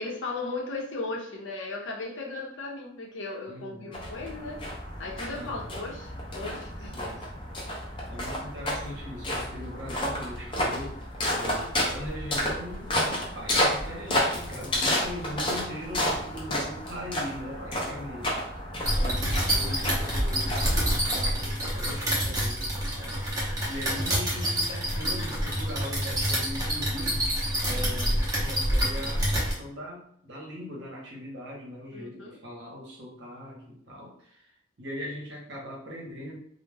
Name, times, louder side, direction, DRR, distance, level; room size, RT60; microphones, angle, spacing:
voice 1, 0.0-4.6 5.0-6.9 31.9-32.4, left 3 dB, 70° left, 0 dB, 0.6 m, -36 dB
voice 2, 3.5-3.9 5.3-5.7 6.9-7.4 8.1-11.1 11.3-18.4 18.8-23.1 23.6-27.3 27.6-34.5 34.8-36.4, equal, 60° right, -2 dB, 0.8 m, -40 dB
sound 1, 3.9-21.6, left 1 dB, 25° left, 0.5 m, -31 dB
sound 2, 18.8-29.5, equal, 20° right, 0.6 m, -27 dB
2.2 x 2.0 x 3.3 m, 0.66 s
head